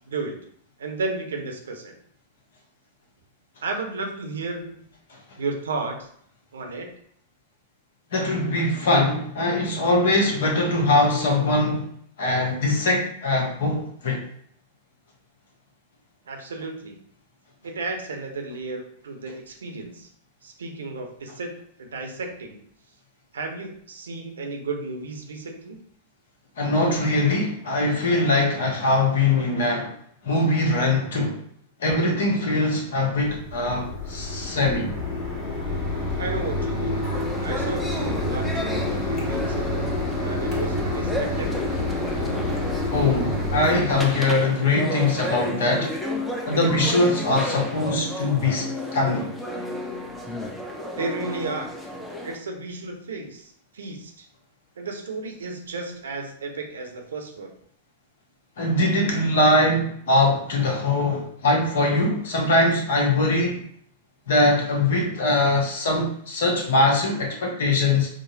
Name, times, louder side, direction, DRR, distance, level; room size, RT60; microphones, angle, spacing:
voice 1, 0.1-0.4 0.8-1.9 3.6-4.8 5.4-6.1 6.5-6.9 16.3-17.0 17.6-20.1 20.4-21.5 21.8-22.6 23.3-25.8 36.2-37.1 37.4-38.8 39.0-39.9 40.2-41.8 50.9-51.7 52.2-54.3 54.8-57.5, right 3 dB, 70° right, 3 dB, 0.6 m, -33 dB
voice 2, 8.1-11.9 12.2-14.3 26.6-29.9 30.2-31.4 31.8-35.0 42.9-45.9 46.4-48.7 48.9-49.3 58.6-63.6 64.3-68.1, left 2 dB, 65° left, 1 dB, 0.9 m, -22 dB
Mechanisms, 33.2-44.2, left 2 dB, 30° left, 1.3 m, -28 dB
sound 1, 37.1-52.4, left 1 dB, 5° left, 0.6 m, -32 dB
5.0 x 2.0 x 2.7 m, 0.65 s
figure-of-eight pair, 95°, 0 cm